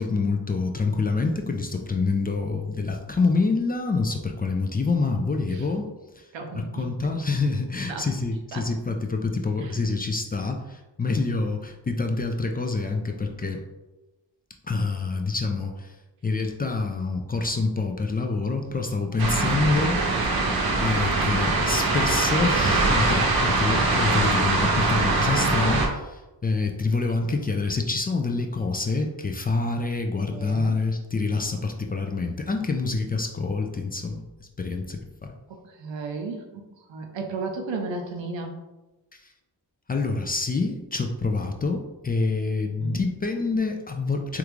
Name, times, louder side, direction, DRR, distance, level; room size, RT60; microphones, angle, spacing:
voice 1, 0.0-5.9 6.2-6.3 6.5-13.6 14.6-15.9 16.2-20.0 20.8-34.2 34.6-35.3 39.2-39.3 39.9-44.4, left 3 dB, 25° left, 3 dB, 0.3 m, -26 dB
voice 2, 6.3-7.1 7.9-8.1 8.5-8.7 9.6-9.7 19.3-19.7 30.3-30.8 35.5-36.6 36.9-38.5 42.8-43.0, right 3 dB, 90° right, 4 dB, 0.6 m, -34 dB
sound 1, 19.2-25.9, right 3 dB, 55° right, 0.8 m, -22 dB
3.5 x 2.4 x 3.0 m, 1.1 s
cardioid pair, 50°, 43 cm